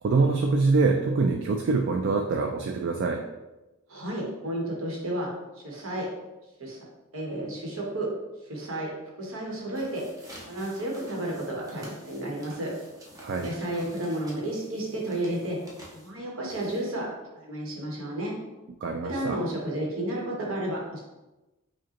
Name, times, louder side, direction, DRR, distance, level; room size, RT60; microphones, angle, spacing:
voice 1, 0.0-3.2 13.2-13.5 18.8-19.4, right 3 dB, 55° right, 2 dB, 0.3 m, -24 dB
voice 2, 3.9-5.3 5.6-6.1 6.6-6.8 7.1-8.1 8.5-8.9 9.2-10.0 10.5-12.7 13.4-15.6 15.9-17.1 17.4-18.4 19.0-21.0, right 1 dB, 75° right, -2 dB, 1.0 m, -32 dB
sound 1, 9.6-17.1, right 1 dB, 15° right, 0.6 m, -50 dB
4.8 x 2.2 x 2.9 m, 1.0 s
head